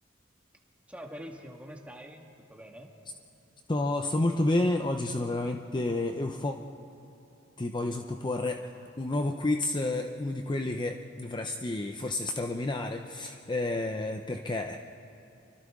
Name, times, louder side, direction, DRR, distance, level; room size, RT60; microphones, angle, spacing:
voice 1, 0.9-2.9, equal, 5° right, 1 dB, 1.8 m, -45 dB
voice 2, 3.7-6.6 7.6-14.8, left 2 dB, 25° left, 4 dB, 0.7 m, -30 dB
29.5 x 24.5 x 3.7 m, 2.9 s
head